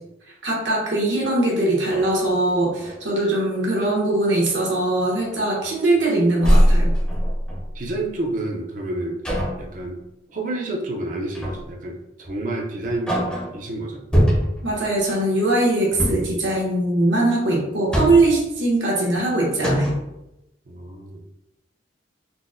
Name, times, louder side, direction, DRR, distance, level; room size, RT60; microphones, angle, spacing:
voice 1, 0.4-6.9 14.6-20.0, right 2 dB, 80° right, -3 dB, 1.0 m, -21 dB
sound 1, 1.2-1.3 1.8-3.0 3.5-4.0 4.5-4.7 5.1-6.0 6.4-7.9 9.2-9.7 11.3-11.8 12.2-12.4 12.8-13.6 14.1-14.7 15.9-16.4 17.6-18.4 19.2-19.3 19.6-20.1, equal, 5° left, 0.6 m, -22 dB
voice 2, 7.7-10.0 10.3-14.0 20.7-21.2, right 2 dB, 45° right, -1 dB, 0.5 m, -29 dB
3.9 x 2.0 x 2.4 m, 0.88 s
head